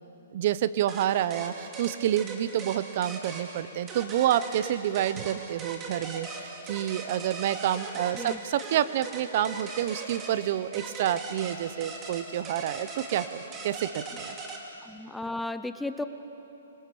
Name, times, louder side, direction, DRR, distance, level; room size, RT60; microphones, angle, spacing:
voice 1, 0.3-14.4, right 11 dB, 45° right, 16 dB, 0.7 m, -28 dB
sound 1, 0.9-14.6, right 3 dB, 20° right, 2.6 m, -40 dB
voice 2, 14.8-16.0, left 2 dB, 5° left, 10 dB, 0.5 m, -34 dB
25.5 x 23.5 x 7.0 m, 2.9 s
hypercardioid pair, 160°, 0 cm